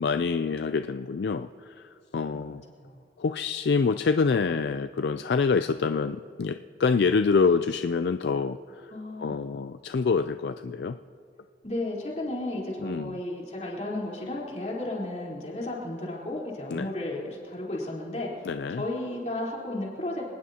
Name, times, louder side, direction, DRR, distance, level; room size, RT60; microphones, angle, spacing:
voice 1, 0.0-2.6 3.2-8.9 9.2-11.0 12.8-13.2 16.7-16.9 18.4-18.9, left 5 dB, 70° left, 10 dB, 0.4 m, -26 dB
voice 2, 8.9-9.4 11.6-18.5 18.7-20.2, left 1 dB, 40° left, -4 dB, 3.9 m, -33 dB
26.0 x 19.0 x 2.9 m, 2.3 s
head